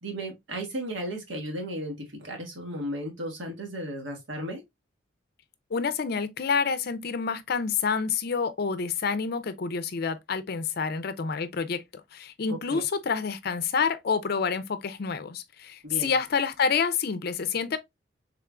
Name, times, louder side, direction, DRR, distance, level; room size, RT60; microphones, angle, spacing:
voice 1, 0.0-4.6 12.5-12.8 15.8-16.1, equal, 90° right, 1.4 m, -35 dB
voice 2, 5.7-11.8 12.1-17.8, left 5 dB, 55° left, 0.5 m, -28 dB
3.6 x 3.4 x 2.4 m
head